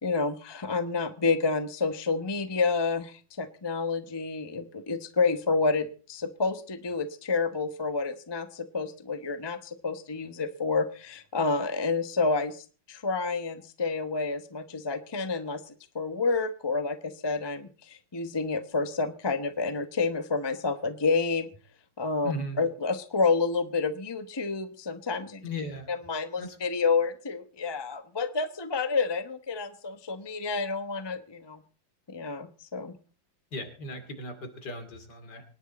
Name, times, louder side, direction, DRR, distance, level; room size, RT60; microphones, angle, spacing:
voice 1, 0.0-21.5 22.0-25.4 25.9-31.6 32.1-33.0, left 4 dB, 20° left, 10 dB, 0.7 m, -29 dB
voice 2, 22.2-22.6 25.4-25.9 26.4-26.6 33.5-35.4, left 1 dB, 60° left, 7 dB, 3.2 m, -37 dB
25.0 x 10.5 x 4.2 m, 0.38 s
omnidirectional pair, 2.1 m